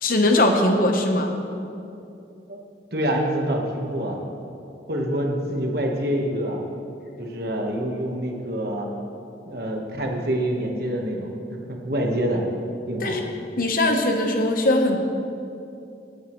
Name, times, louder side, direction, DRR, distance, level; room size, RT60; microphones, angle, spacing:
voice 1, 0.0-1.4 13.0-13.2 13.6-15.0, left 1 dB, 50° left, 3 dB, 1.1 m, -20 dB
voice 2, 2.9-4.2 4.9-6.6 7.2-8.9 9.4-12.4 12.9-13.2, right 1 dB, 55° right, 1 dB, 1.4 m, -26 dB
17.5 x 9.4 x 3.2 m, 2.7 s
head